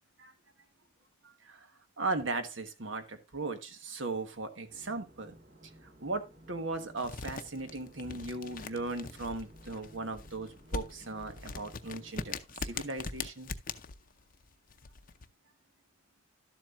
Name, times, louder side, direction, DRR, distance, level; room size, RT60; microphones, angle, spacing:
voice 1, 1.2-1.7 2.0-5.4 6.0-13.5, right 3 dB, 70° right, 8 dB, 1.3 m, -37 dB
sound 1, 4.7-12.3, right 1 dB, 45° right, 1.6 m, -56 dB
sound 2, 7.0-15.3, left 4 dB, 45° left, 0.6 m, -41 dB
12.0 x 7.6 x 2.5 m, 0.23 s
head